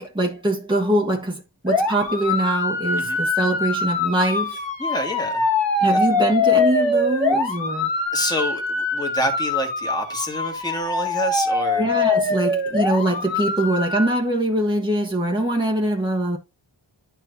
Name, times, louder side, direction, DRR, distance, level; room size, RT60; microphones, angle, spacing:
voice 1, 0.0-4.6 5.8-7.9 11.8-16.4, right 1 dB, 10° right, 1.4 m, -23 dB
sound 1, 1.7-14.1, left 3 dB, 70° left, 1.7 m, -23 dB
voice 2, 4.8-5.4 5.9-6.3 8.1-11.9, equal, 10° left, 1.9 m, -28 dB
10.5 x 4.6 x 2.7 m
wide cardioid pair, 55°, 47 cm